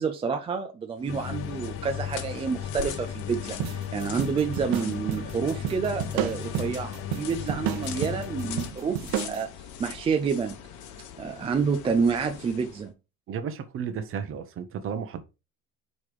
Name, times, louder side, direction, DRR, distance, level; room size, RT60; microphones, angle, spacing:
voice 1, 0.0-9.5 9.8-10.6 11.2-12.9, right 5 dB, 15° right, 0.4 m, -28 dB
sound 1, 1.0-12.9, left 9 dB, 55° left, 1.1 m, -42 dB
sound 2, 1.1-8.7, left 10 dB, 40° left, 0.6 m, -36 dB
sound 3, 3.6-9.4, right 11 dB, 85° right, 1.2 m, -32 dB
voice 2, 13.3-15.2, right 7 dB, 35° right, 0.9 m, -33 dB
5.5 x 5.0 x 4.6 m
cardioid pair, 175°, 35 cm